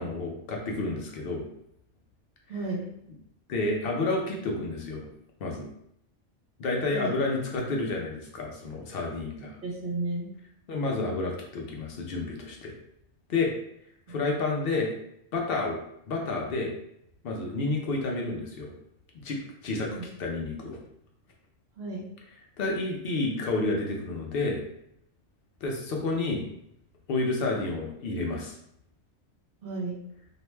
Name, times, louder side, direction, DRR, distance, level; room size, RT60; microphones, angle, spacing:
voice 1, 0.0-1.4 3.5-5.1 5.4-5.7 6.6-9.5 10.7-12.7 13.3-13.5 14.1-14.9 15.3-15.8 16.1-16.7 17.2-18.7 19.2-20.8 22.6-24.6 25.6-26.4 27.1-28.6, left 3 dB, 60° left, 0 dB, 0.7 m, -30 dB
voice 2, 2.5-2.9 6.9-7.1 9.6-10.3 14.1-14.2 19.9-20.1 21.8-22.0 29.6-30.0, right 3 dB, 50° right, -4 dB, 1.1 m, -33 dB
2.7 x 2.1 x 3.1 m, 0.73 s
omnidirectional pair, 1.3 m